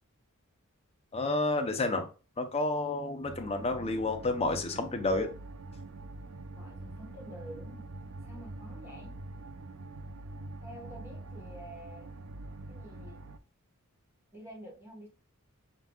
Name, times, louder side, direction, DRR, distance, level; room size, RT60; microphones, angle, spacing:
voice 1, 1.1-2.1 2.4-5.3, left 2 dB, 30° left, 5 dB, 0.6 m, -30 dB
sound 1, 3.2-13.4, right 2 dB, 70° right, 0.4 m, -45 dB
voice 2, 6.5-7.9 8.2-9.2 10.6-12.1 12.6-13.2 14.3-15.1, equal, 10° right, -2 dB, 1.3 m, -48 dB
4.5 x 3.9 x 2.3 m, 0.34 s
head